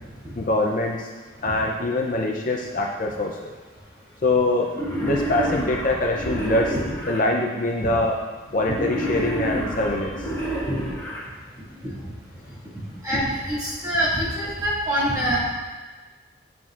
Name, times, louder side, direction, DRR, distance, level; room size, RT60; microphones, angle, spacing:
voice 1, 0.4-1.1 1.4-3.5 4.2-4.7 5.0-6.8 7.0-8.2 8.5-10.3, left 2 dB, 45° left, 0 dB, 0.5 m, -23 dB
Wild animals, 4.7-7.2 8.7-11.2, right 1 dB, 15° left, 1.5 m, -29 dB
voice 2, 13.0-15.4, equal, 15° right, -9 dB, 2.0 m, -24 dB
9.2 x 5.9 x 2.4 m, 1.4 s
head